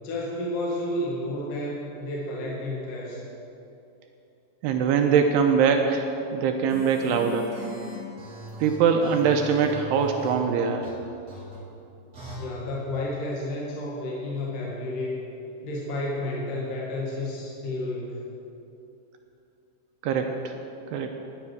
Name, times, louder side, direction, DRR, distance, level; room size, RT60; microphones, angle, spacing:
voice 1, 0.0-3.3 12.4-15.2 15.6-18.2, left 1 dB, 60° left, -4 dB, 2.7 m, -31 dB
voice 2, 4.6-7.5 8.6-10.9 20.0-20.5 20.9-21.1, right 6 dB, 85° right, 4 dB, 2.5 m, -23 dB
sound 1, 6.7-10.3 10.8-10.9 11.3-11.6 12.1-12.4, right 1 dB, 25° right, 2.6 m, -40 dB
13.0 x 10.0 x 6.2 m, 2.8 s
omnidirectional pair, 5.1 m